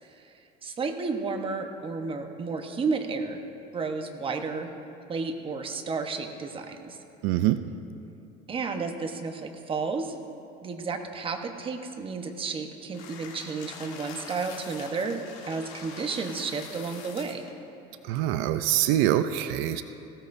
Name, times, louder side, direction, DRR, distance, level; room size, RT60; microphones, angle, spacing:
voice 1, 0.6-3.4 3.7-4.7 5.1-7.0 8.5-10.1 10.6-15.2 15.5-17.5, right 4 dB, 25° right, 4 dB, 1.1 m, -32 dB
voice 2, 7.2-7.6 18.0-19.8, right 13 dB, 80° right, 10 dB, 0.5 m, -24 dB
sound 1, 12.9-17.5, left 5 dB, 75° left, 2.2 m, -44 dB
19.0 x 16.0 x 2.7 m, 2.8 s
cardioid pair, 135°, 20 cm